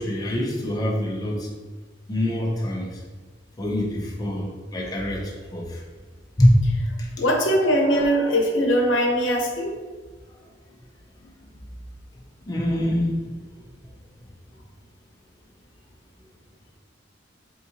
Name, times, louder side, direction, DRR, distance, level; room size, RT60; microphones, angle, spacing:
voice 1, 0.0-1.5 2.1-2.9 3.6-5.8 6.4-6.6 12.5-13.1, equal, 20° left, -2 dB, 0.6 m, -24 dB
voice 2, 7.2-9.7, equal, 85° left, 0 dB, 0.8 m, -21 dB
4.1 x 3.6 x 2.8 m, 1.4 s
head